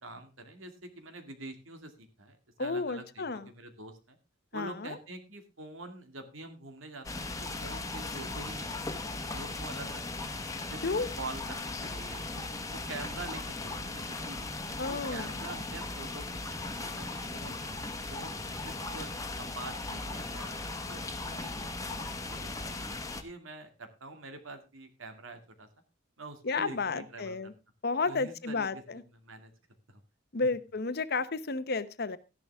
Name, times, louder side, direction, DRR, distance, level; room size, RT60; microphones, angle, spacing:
voice 1, 0.0-4.2 4.5-10.3 10.7-10.8 11.2-12.4 12.7-14.5 14.9-17.7 18.1-19.1 19.4-21.6 21.8-25.7 26.2-27.5 28.0-28.8 29.2-29.5 29.9-30.0 30.4-30.5, right 2 dB, 85° right, 7 dB, 2.3 m, -46 dB
voice 2, 2.6-3.5 4.5-5.0 10.8-11.1 14.8-15.3 26.4-27.5 27.8-29.0 30.3-32.2, left 3 dB, 50° left, 13 dB, 0.9 m, -32 dB
sound 1, 7.0-23.2, left 2 dB, 15° left, 1.3 m, -38 dB
13.5 x 11.0 x 3.5 m, 0.28 s
head